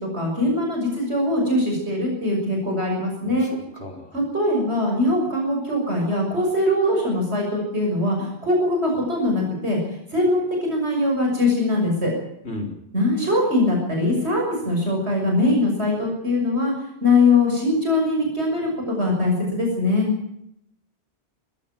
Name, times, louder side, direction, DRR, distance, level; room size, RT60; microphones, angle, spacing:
voice 1, 0.1-3.5 4.1-9.8 10.1-12.1 12.9-16.7 17.0-20.1, left 2 dB, 70° right, 0 dB, 6.6 m, -22 dB
voice 2, 3.2-4.1 12.4-12.7, left 1 dB, 70° left, 2 dB, 5.0 m, -34 dB
20.0 x 16.0 x 9.1 m, 0.79 s
omnidirectional pair, 1.1 m